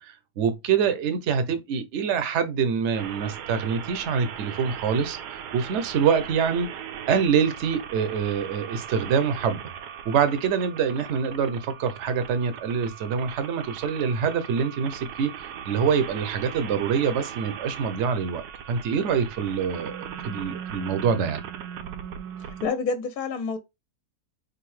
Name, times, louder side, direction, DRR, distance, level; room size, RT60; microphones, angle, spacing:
voice 1, 0.0-6.7 7.1-9.6 10.0-21.4, right 6 dB, 55° right, 0.9 m, -25 dB
sound 1, 2.9-22.7, right 8 dB, 75° right, 1.1 m, -39 dB
voice 2, 22.6-23.6, left 5 dB, 70° left, 1.0 m, -27 dB
4.9 x 2.5 x 3.1 m
omnidirectional pair, 1.8 m